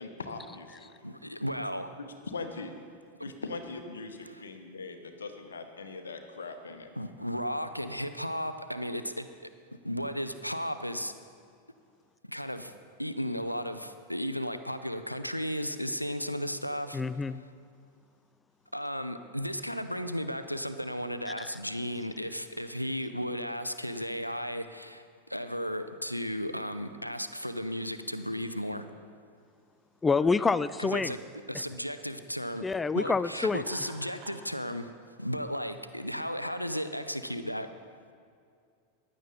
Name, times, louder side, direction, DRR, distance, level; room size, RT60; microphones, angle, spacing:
voice 1, 0.0-0.9 1.6-1.7 2.0-2.7 3.2-6.9, left 3 dB, 70° left, 6 dB, 1.1 m, -41 dB
voice 2, 1.0-1.9 3.2-3.3 4.3-4.4 6.9-9.3 9.8-11.1 12.3-12.7 13.0-17.0 18.7-28.9 30.8-31.2 31.5-32.7 32.9-34.9 35.2-37.7, equal, 90° left, 10 dB, 0.5 m, -34 dB
voice 3, 16.9-17.4 21.4-21.5 30.0-31.1 32.6-33.6, left 4 dB, 15° left, 16 dB, 0.3 m, -27 dB
Laughter, 33.6-34.5, right 4 dB, 40° right, 1.8 m, -48 dB
15.5 x 10.5 x 4.1 m, 2.3 s
figure-of-eight pair, 90°, 0 cm